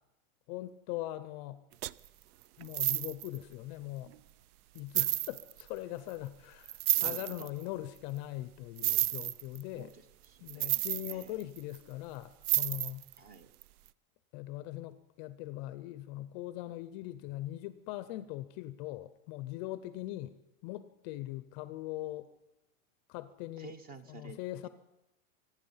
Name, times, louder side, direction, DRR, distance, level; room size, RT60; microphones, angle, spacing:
voice 1, 0.5-1.6 2.6-4.1 4.7-9.9 10.4-13.0 14.3-20.3 20.6-22.3 23.1-23.7 24.1-24.7, left 15 dB, 30° left, 14 dB, 0.5 m, -41 dB
sound 1, 1.8-2.1 2.6-3.4 4.1-4.2 4.8-5.6 6.7-7.5 8.8-9.6 10.5-11.8 12.4-13.2 13.6-13.7, right 14 dB, 85° right, 0.6 m, -31 dB
voice 2, 6.9-7.5 9.7-11.4 13.2-13.5 23.6-24.4, right 4 dB, 20° right, 13 dB, 0.6 m, -51 dB
24.5 x 9.6 x 5.5 m, 0.94 s
supercardioid pair, 150°, 43 cm